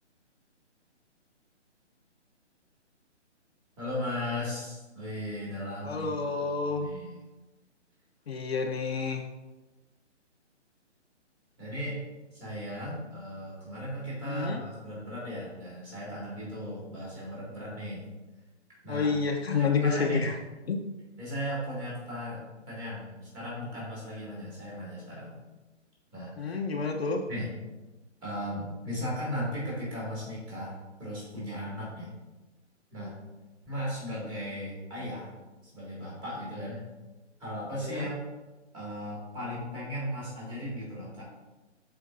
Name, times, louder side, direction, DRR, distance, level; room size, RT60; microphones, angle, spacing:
voice 1, 3.8-6.2 6.6-7.2 11.6-12.0 12.4-18.0 18.8-19.2 19.5-20.3 21.2-25.3 26.1-26.6 27.3-27.5 28.2-30.7 31.0-32.1 32.9-33.1 33.7-35.3 35.7-36.8 37.4-38.2 38.7-41.2, equal, 10° right, -7 dB, 2.1 m, -36 dB
voice 2, 5.8-6.9 8.3-9.2 14.2-14.6 18.9-20.4 20.7-20.8 26.4-27.2 37.8-38.1, left 5 dB, 60° left, 2 dB, 0.8 m, -29 dB
12.0 x 4.4 x 2.5 m, 1.1 s
hypercardioid pair, 160°, 36 cm